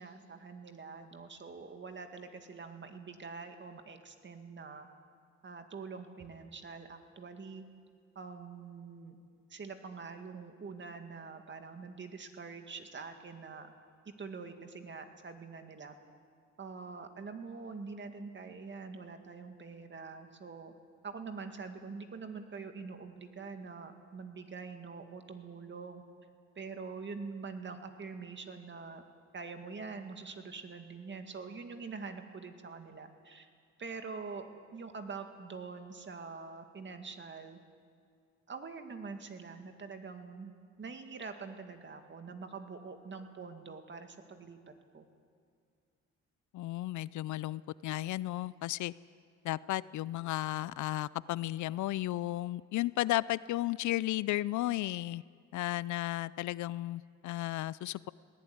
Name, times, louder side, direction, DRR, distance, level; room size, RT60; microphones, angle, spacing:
voice 1, 0.0-4.9 5.4-7.6 8.2-9.2 9.5-13.7 14.1-16.0 16.6-20.7 21.0-26.0 26.6-29.0 29.3-33.5 33.8-34.4 34.7-37.6 38.5-40.5 40.8-44.6 44.9-45.0, right 4 dB, 40° right, 6 dB, 2.2 m, -45 dB
voice 2, 46.5-48.9 49.4-55.2 55.5-58.1, left 16 dB, 75° left, 20 dB, 0.5 m, -34 dB
19.5 x 17.5 x 9.5 m, 2.2 s
cardioid pair, 90°, 30 cm